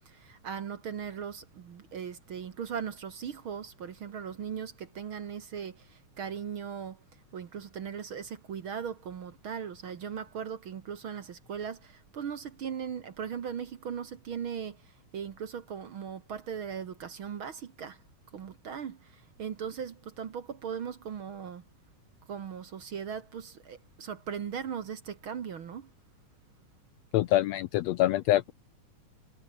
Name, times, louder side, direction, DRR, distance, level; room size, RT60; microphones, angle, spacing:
voice 1, 0.1-7.0 7.3-14.8 15.1-18.0 18.3-19.1 19.4-21.6 22.3-25.9, right 7 dB, 50° right, 1.8 m, -38 dB
voice 2, 27.1-28.5, left 14 dB, 75° left, 1.6 m, -25 dB
omnidirectional pair, 3.5 m